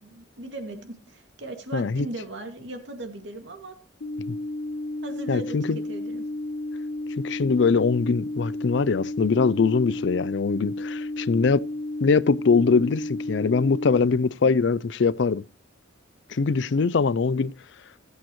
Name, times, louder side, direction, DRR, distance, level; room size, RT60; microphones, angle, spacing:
voice 1, 0.0-3.8 5.0-6.2, right 2 dB, 70° right, 2.3 m, -38 dB
voice 2, 1.7-2.1 4.3-4.4 5.3-5.8 7.2-11.6 12.0-15.4 16.3-17.5, left 4 dB, 70° left, 0.4 m, -22 dB
sound 1, 4.0-14.0, left 1 dB, 90° left, 0.9 m, -32 dB
19.0 x 8.4 x 3.1 m
head